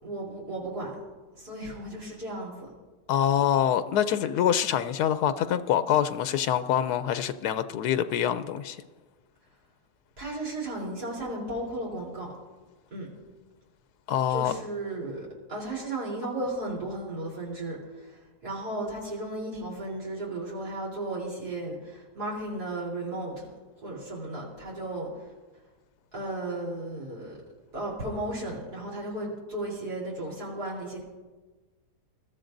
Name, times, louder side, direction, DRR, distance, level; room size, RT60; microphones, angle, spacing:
voice 1, 0.0-1.0 1.3-2.7 10.2-12.3 12.9-13.1 14.3-23.5 23.8-25.3 26.1-27.4 27.7-31.0, right 1 dB, 90° right, -4 dB, 4.2 m, -35 dB
voice 2, 3.1-8.8 14.1-14.5, left 10 dB, 85° left, 11 dB, 1.1 m, -25 dB
21.5 x 13.5 x 2.6 m, 1.3 s
omnidirectional pair, 1.7 m